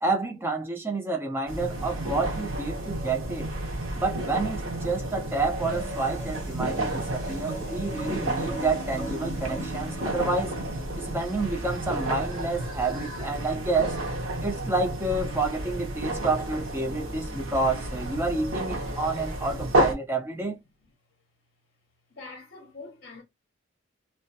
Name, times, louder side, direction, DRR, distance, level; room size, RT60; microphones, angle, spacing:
voice 1, 0.0-3.5 4.0-10.6 11.0-14.0 14.4-20.6, right 3 dB, 10° right, 0.4 m, -29 dB
sound 1, 1.5-19.9, right 1 dB, 90° right, 0.7 m, -31 dB
sound 2, 5.5-11.8, right 1 dB, 35° left, 0.9 m, -39 dB
voice 2, 22.1-23.2, left 3 dB, 50° left, 0.7 m, -44 dB
2.2 x 2.1 x 2.6 m
head